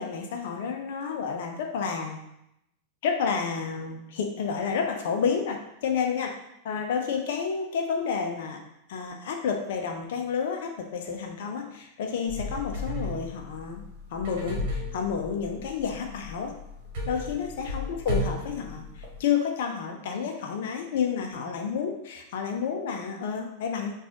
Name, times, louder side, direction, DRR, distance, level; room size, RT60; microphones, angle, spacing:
voice 1, 0.0-2.2 3.0-6.3 6.6-8.6 8.9-13.8 14.1-16.5 17.1-23.9, left 6 dB, 55° left, 3 dB, 0.5 m, -30 dB
sound 1, 12.3-19.2, left 1 dB, 45° right, 1.2 m, -34 dB
6.0 x 2.4 x 2.8 m, 0.82 s
figure-of-eight pair, 90°, 0 cm